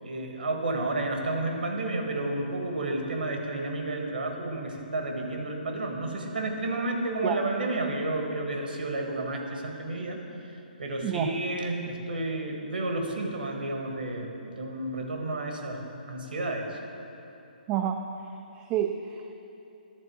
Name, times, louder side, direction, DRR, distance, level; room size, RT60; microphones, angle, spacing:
voice 1, 0.0-10.2 10.8-16.8, right 2 dB, 75° right, 2 dB, 1.5 m, -31 dB
voice 2, 11.0-11.4 17.7-19.3, right 9 dB, 25° right, 4 dB, 0.4 m, -30 dB
11.0 x 4.3 x 7.0 m, 2.9 s
figure-of-eight pair, 130°, 5 cm